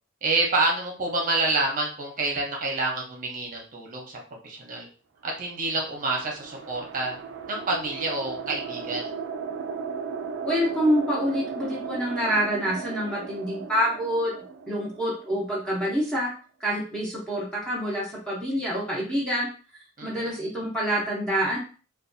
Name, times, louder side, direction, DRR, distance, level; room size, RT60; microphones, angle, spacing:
voice 1, 0.2-4.2 4.4-4.9 5.2-7.2 7.5-9.1 20.0-20.3, right 2 dB, 40° right, 0 dB, 0.7 m, -28 dB
sound 1, 5.5-16.0, right 5 dB, 60° right, 0.3 m, -36 dB
voice 2, 10.4-14.3 14.7-16.3 16.6-19.5 20.0-21.6, equal, 5° left, -7 dB, 0.7 m, -26 dB
2.6 x 2.2 x 2.6 m, 0.38 s
head